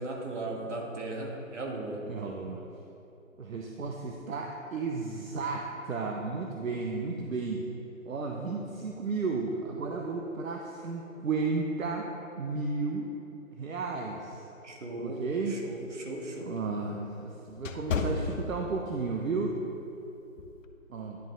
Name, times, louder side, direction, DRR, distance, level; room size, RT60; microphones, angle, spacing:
voice 1, 0.0-2.0 14.6-16.6, right 2 dB, 60° right, 0 dB, 1.7 m, -37 dB
voice 2, 2.1-2.6 3.4-7.6 8.1-12.1 12.4-13.1 13.5-14.4 15.0-15.6 16.4-19.6 20.9-21.2, right 4 dB, 75° right, 1 dB, 0.8 m, -33 dB
sound 1, 15.4-19.1 19.5-19.8 20.4-20.6, left 4 dB, 65° left, 0.8 m, -34 dB
10.5 x 5.1 x 3.8 m, 2.9 s
figure-of-eight pair, 150°, 41 cm